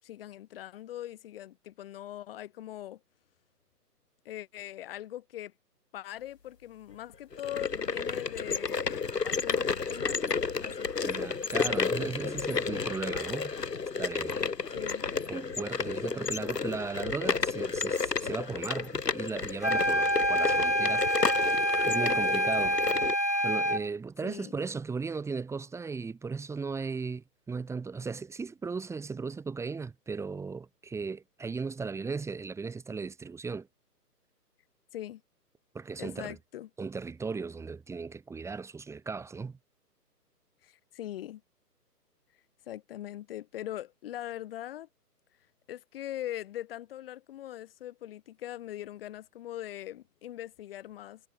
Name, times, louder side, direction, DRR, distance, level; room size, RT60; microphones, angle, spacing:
voice 1, 0.0-3.0 4.3-5.5 5.9-10.2 10.6-11.3 14.7-15.1 24.2-24.6 34.9-35.2 36.0-36.7 40.6-41.4 42.7-44.9 45.7-51.2, left 13 dB, 35° left, 7.0 m, -41 dB
sound 1, 7.3-23.2, left 5 dB, 80° left, 3.6 m, -32 dB
voice 2, 11.0-13.5 14.0-22.8 23.4-33.7 35.7-36.4 36.8-39.6, right 4 dB, 5° right, 5.9 m, -37 dB
sound 2, 19.6-23.9, equal, 10° left, 0.5 m, -27 dB
hypercardioid pair, 150°, 48 cm